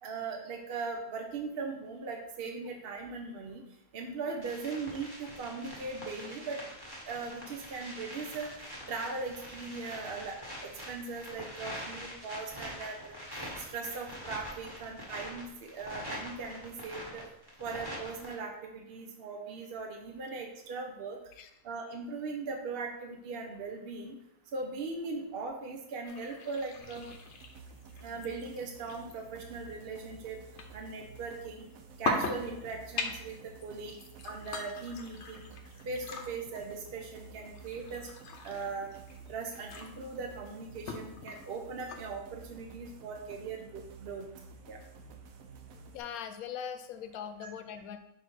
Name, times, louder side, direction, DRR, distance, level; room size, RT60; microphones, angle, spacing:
voice 1, 0.0-3.6 3.9-6.6 7.1-8.5 8.9-13.1 13.6-17.2 17.6-21.2 21.6-24.2 24.5-27.1 28.0-30.4 30.7-31.6 32.0-34.0 34.2-35.5 35.9-38.1 38.4-38.9 39.3-44.3 44.7-44.8 47.4-47.5, right 4 dB, 55° right, 2 dB, 0.7 m, -39 dB
sound 1, 4.4-18.3, equal, 15° right, 1.3 m, -44 dB
sound 2, 26.0-42.0, left 3 dB, 60° left, 0.9 m, -42 dB
sound 3, 26.8-46.0, right 4 dB, 70° right, 1.0 m, -52 dB
voice 2, 45.7-48.0, left 8 dB, 80° left, 8 dB, 1.1 m, -41 dB
5.4 x 4.0 x 4.6 m, 0.84 s
omnidirectional pair, 1.5 m